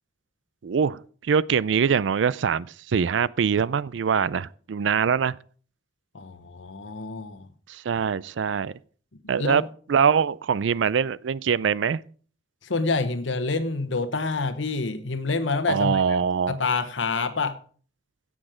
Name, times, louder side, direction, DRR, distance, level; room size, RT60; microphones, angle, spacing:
voice 1, 0.6-5.4 7.7-8.7 9.3-9.6 9.9-12.0 15.7-16.6, right 6 dB, 80° right, 0.4 m, -23 dB
voice 2, 6.1-7.5 9.2-9.6 12.6-16.0 16.5-17.6, left 3 dB, 90° left, 1.0 m, -27 dB
16.5 x 6.2 x 5.0 m
head